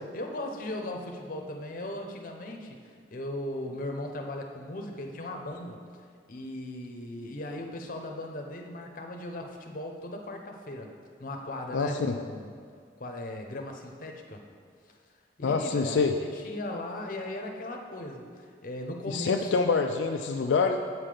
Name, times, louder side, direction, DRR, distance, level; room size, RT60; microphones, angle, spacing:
voice 1, 0.1-5.8 6.3-10.9 11.2-12.5 13.0-14.4 15.4-19.5, left 1 dB, 50° left, 2 dB, 0.8 m, -38 dB
voice 2, 11.7-12.2 15.4-16.2 19.1-20.8, left 4 dB, 80° left, 4 dB, 0.4 m, -26 dB
7.9 x 5.7 x 5.0 m, 2.1 s
head